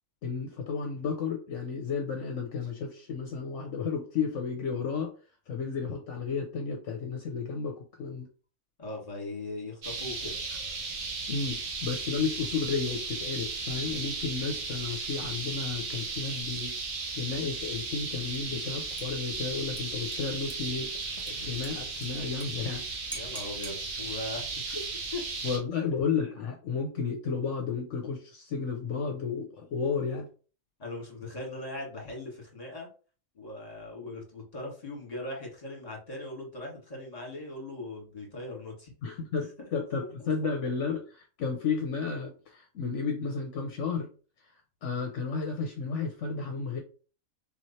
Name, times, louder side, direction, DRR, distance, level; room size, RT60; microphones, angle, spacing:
voice 1, 0.2-5.1 5.5-8.3 11.3-16.7 17.1-22.8 25.4-30.3 39.0-44.1 44.8-46.8, left 5 dB, 70° left, 3 dB, 1.0 m, -32 dB
voice 2, 8.8-10.4 23.1-24.8 25.1-25.2 30.8-32.9 33.3-38.9, left 2 dB, 30° left, -1 dB, 1.7 m, -39 dB
sound 1, 9.8-25.6, right 3 dB, 90° right, 1.4 m, -35 dB
Dishes pots and pans / Liquid, 18.3-18.6 19.0-22.5 22.7-22.8 23.1-23.8 24.7-25.2, right 1 dB, 15° right, 0.9 m, -47 dB
3.7 x 3.2 x 4.2 m, 0.38 s
omnidirectional pair, 1.4 m